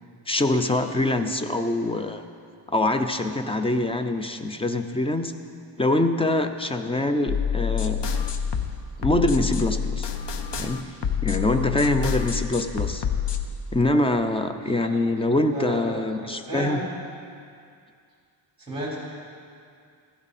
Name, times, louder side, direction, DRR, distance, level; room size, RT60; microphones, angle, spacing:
voice 1, 0.3-2.2 2.7-5.3 5.8-8.2 9.0-10.1 10.6-10.9 11.2-13.0 13.7-16.8, left 2 dB, 10° left, 7 dB, 0.4 m, -24 dB
sound 1, 7.3-13.4, left 7 dB, 55° left, 0.8 m, -27 dB
voice 2, 11.4-11.7 14.8-14.9 15.5-16.8 18.6-19.0, right 1 dB, 10° right, -6 dB, 4.0 m, -33 dB
15.0 x 12.0 x 4.2 m, 2.3 s
wide cardioid pair, 165°, 49 cm